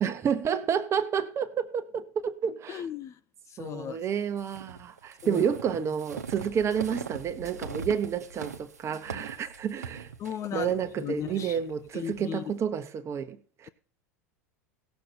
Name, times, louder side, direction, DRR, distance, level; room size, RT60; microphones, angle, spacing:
voice 1, 0.0-2.9 3.6-10.1 10.5-13.7, right 7 dB, 35° right, 1.2 m, -30 dB
voice 2, 2.7-3.1 3.5-4.0 5.2-5.4 10.2-10.7 11.0-11.6 11.9-12.5, left 9 dB, 35° left, 0.6 m, -35 dB
sound 1, 4.4-12.3, right 5 dB, 90° right, 0.9 m, -41 dB
17.0 x 6.9 x 4.4 m
hypercardioid pair, 90°, 9 cm